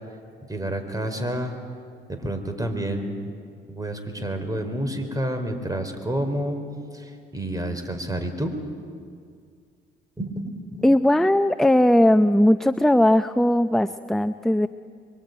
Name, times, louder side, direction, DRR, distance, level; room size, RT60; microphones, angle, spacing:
voice 1, 0.5-1.5 2.1-3.1 3.7-6.6 6.9-8.5 10.2-11.0, right 1 dB, 20° right, 7 dB, 4.3 m, -29 dB
voice 2, 10.8-14.7, left 1 dB, ahead, 10 dB, 0.6 m, -18 dB
26.5 x 23.0 x 9.4 m, 2.2 s
cardioid pair, 90°, 20 cm